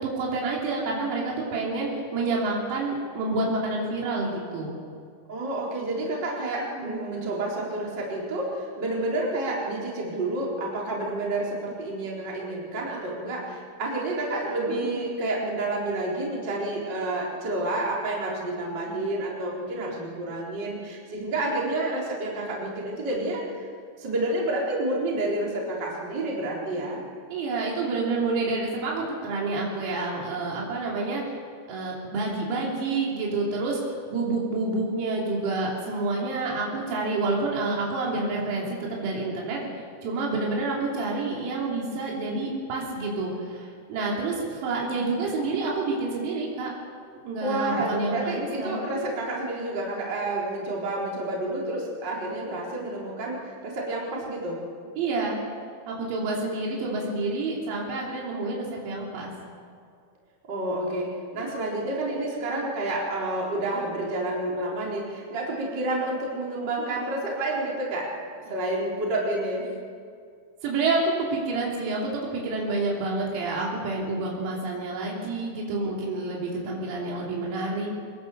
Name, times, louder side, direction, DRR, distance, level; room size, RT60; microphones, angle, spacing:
voice 1, 0.0-4.7 6.6-7.1 14.7-14.9 27.3-31.2 31.7-33.8 34.1-39.6 40.0-46.7 47.1-48.9 55.0-55.4 55.9-59.3 70.6-77.9, right 3 dB, 85° right, -3 dB, 6.0 m, -28 dB
voice 2, 5.3-23.4 24.0-27.0 47.4-54.6 60.5-68.1 68.5-69.7, right 2 dB, 25° right, -4 dB, 3.6 m, -29 dB
23.0 x 21.0 x 6.9 m, 2.2 s
omnidirectional pair, 6.0 m